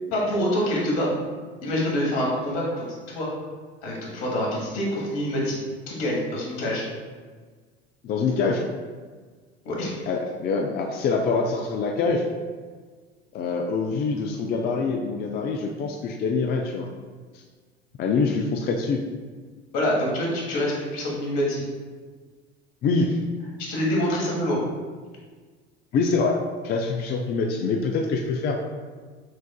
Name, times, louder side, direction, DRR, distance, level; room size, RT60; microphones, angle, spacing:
voice 1, 0.1-1.1 1.6-3.3 3.8-5.6 5.9-6.8 9.6-9.9 19.7-21.6 23.6-24.6, equal, 60° left, -3 dB, 1.4 m, -26 dB
voice 2, 8.0-8.6 10.1-12.3 13.3-16.9 17.3-17.4 18.0-19.0 22.8-23.1 25.9-28.6, left 4 dB, 30° left, 2 dB, 0.4 m, -25 dB
6.2 x 2.5 x 2.3 m, 1.5 s
hypercardioid pair, 80°, 33 cm